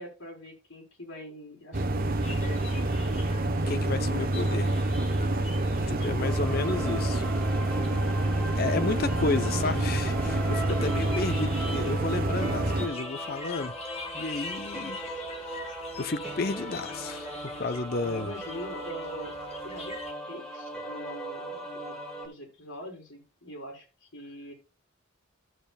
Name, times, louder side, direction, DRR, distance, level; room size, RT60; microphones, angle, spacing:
voice 1, 0.0-2.6 6.2-6.6 18.0-19.4 19.6-20.0 20.3-22.0 22.2-24.5, left 1 dB, 85° left, 4.3 m, -43 dB
sound 1, 1.7-12.9, right 2 dB, 45° right, 0.9 m, -27 dB
sound 2, 2.2-20.1, left 3 dB, 30° left, 1.6 m, -45 dB
voice 2, 3.7-4.8 5.9-7.3 8.5-13.7 14.1-15.0 16.0-18.3, left 3 dB, 50° left, 0.7 m, -32 dB
sound 3, 6.2-22.3, right 1 dB, 5° left, 1.9 m, -39 dB
14.0 x 7.2 x 2.3 m
head